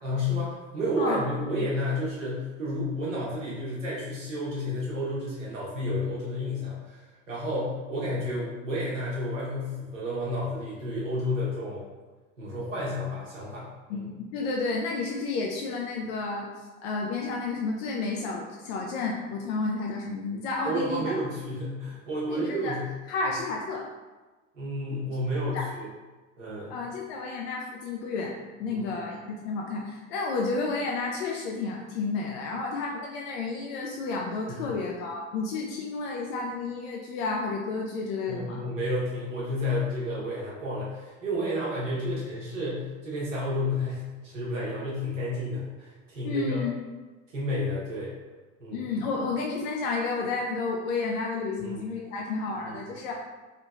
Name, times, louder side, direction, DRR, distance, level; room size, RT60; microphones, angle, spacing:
voice 1, 0.0-11.8 12.4-13.7 13.9-14.1 20.6-22.8 24.5-25.9 26.4-26.8 28.7-28.8 34.5-34.7 38.3-46.6 47.3-48.1 48.6-48.9 51.6-51.8 52.5-52.8, left 1 dB, 75° right, -6 dB, 1.2 m, -31 dB
voice 2, 13.9-16.5 16.8-21.2 22.3-22.8 23.1-23.8 25.5-25.7 26.7-28.3 28.6-38.6 46.2-46.7 48.7-53.2, left 3 dB, 50° left, -1 dB, 0.5 m, -31 dB
3.2 x 2.9 x 2.3 m, 1.2 s
figure-of-eight pair, 70°, 39 cm